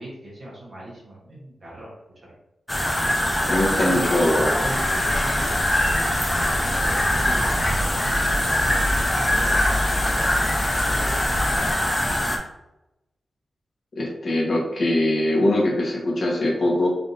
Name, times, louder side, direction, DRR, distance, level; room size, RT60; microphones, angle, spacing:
voice 1, 0.0-2.4 3.4-5.5 6.3-8.2 9.0-11.8, right 1 dB, 40° right, -6 dB, 1.0 m, -37 dB
sound 1, 2.7-12.4, left 1 dB, 10° left, 0.5 m, -23 dB
voice 2, 3.5-4.5 14.0-16.9, left 1 dB, 45° left, -2 dB, 1.1 m, -22 dB
sound 2, 4.6-11.7, left 2 dB, 75° left, 0.3 m, -30 dB
3.4 x 2.6 x 3.9 m, 0.91 s
wide cardioid pair, 165°, 0 cm